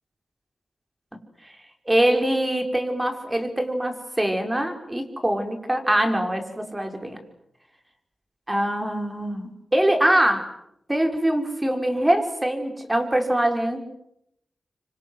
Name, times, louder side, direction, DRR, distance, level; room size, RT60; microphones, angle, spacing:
voice 1, 1.9-7.2 8.5-10.5 10.9-13.8, right 1 dB, 20° right, 5 dB, 5.4 m, -23 dB
26.5 x 25.5 x 8.0 m, 0.77 s
cardioid pair, 55°, 0 cm